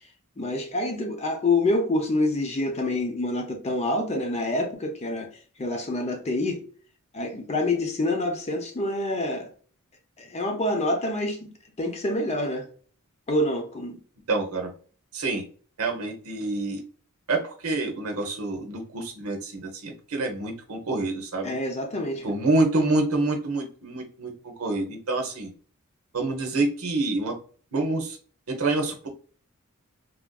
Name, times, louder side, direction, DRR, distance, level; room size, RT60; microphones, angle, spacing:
voice 1, 0.4-5.3 5.6-6.6 7.1-9.5 10.2-11.5 11.8-12.7 13.3-14.0 21.4-22.2, left 2 dB, 30° left, 0.6 m, -27 dB
voice 2, 14.3-14.7 15.1-15.4 15.8-16.8 17.3-21.5 22.2-25.5 26.1-27.3 27.7-28.2 28.5-29.1, right 2 dB, 75° right, 0.8 m, -27 dB
3.5 x 2.5 x 2.2 m
head